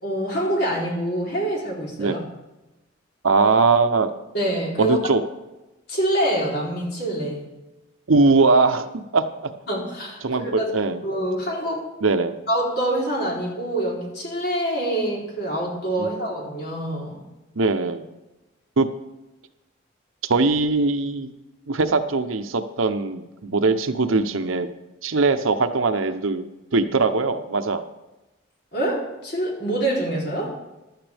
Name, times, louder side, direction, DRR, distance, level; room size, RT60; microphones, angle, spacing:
voice 1, 0.0-2.2 4.3-5.0 5.9-7.4 9.7-10.7 11.0-11.8 12.5-17.2 28.7-30.5, right 1 dB, 50° left, -4 dB, 3.5 m, -25 dB
voice 2, 3.2-4.1 4.8-5.2 8.1-9.2 10.2-11.0 12.0-12.4 16.0-16.1 17.6-18.0 18.8-18.9 20.3-21.3 21.7-24.7 25.0-26.4 26.7-27.8, right 3 dB, 85° right, 9 dB, 0.8 m, -20 dB
15.0 x 11.5 x 3.5 m, 1.0 s
head